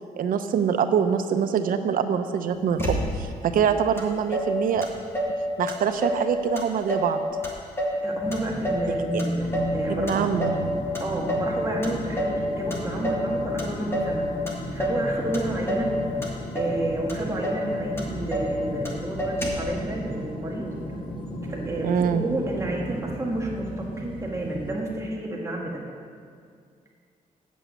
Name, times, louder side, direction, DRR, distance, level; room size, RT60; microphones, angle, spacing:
voice 1, 0.2-4.9 5.6-7.2 8.9-9.2 9.9-10.5 21.8-22.2, right 7 dB, 90° right, 8 dB, 0.7 m, -24 dB
Motor vehicle (road), 2.8-3.4 4.0-4.1 4.3-5.4 5.7-6.3 6.6-7.1 7.4-8.9 9.2-9.8 10.1-10.7 10.9-11.5 11.8-12.4 12.7-13.3 13.6-14.2 14.5-15.0 15.3-15.9 16.2-16.8 17.1-17.2 17.4-17.7 18.0-18.5 18.8-18.9 19.2-19.7, equal, 15° left, 1.6 m, -28 dB
voice 2, 8.0-10.4 11.0-14.3 14.7-15.9 16.5-20.7 21.5-25.8, right 1 dB, 20° right, -2 dB, 1.5 m, -31 dB
sound 1, 8.2-24.8, right 2 dB, 35° right, 0.9 m, -36 dB
sound 2, 9.4-22.8, left 2 dB, 85° left, 1.5 m, -38 dB
8.4 x 7.0 x 8.2 m, 2.2 s
wide cardioid pair, 150°, 14 cm